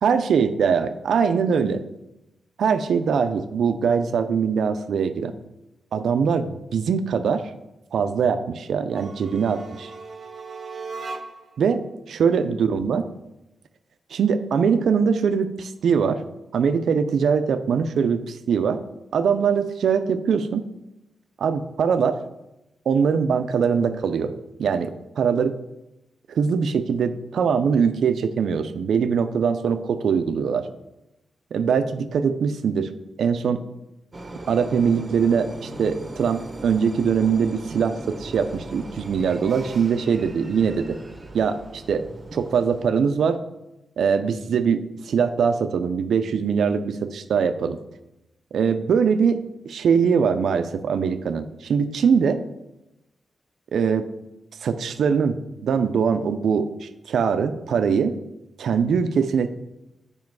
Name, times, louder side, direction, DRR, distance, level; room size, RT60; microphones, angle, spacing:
voice 1, 0.0-1.8 2.6-5.3 5.9-7.5 7.9-9.9 11.6-11.8 12.1-13.1 14.1-16.2 16.5-18.8 19.1-20.7 21.4-22.2 22.9-24.3 24.6-25.6 26.3-30.7 31.5-32.9 33.2-33.6 34.5-41.0 41.3-42.0 42.3-43.4 44.0-47.8 48.5-49.4 49.7-52.4 53.7-54.1 54.6-58.1 58.6-59.5, right 6 dB, 85° right, 10 dB, 0.4 m, -22 dB
sound 1, 8.8-11.6, right 4 dB, 50° right, 0.7 m, -37 dB
sound 2, 34.1-42.8, right 2 dB, 25° right, 1.1 m, -39 dB
7.4 x 5.1 x 4.6 m, 0.92 s
wide cardioid pair, 135°, 0 cm